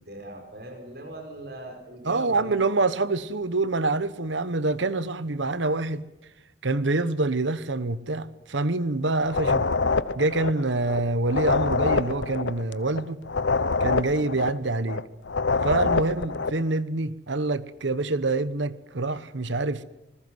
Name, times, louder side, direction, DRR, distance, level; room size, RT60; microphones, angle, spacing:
voice 1, 0.0-2.6, right 1 dB, 55° right, 5.3 m, -40 dB
voice 2, 2.0-6.0 6.6-9.6 10.2-13.2 13.8-15.0 15.6-19.8, right 2 dB, 80° right, 1.1 m, -26 dB
sound 1, 9.3-16.6, left 4 dB, 80° left, 0.9 m, -26 dB
27.0 x 20.5 x 8.0 m
head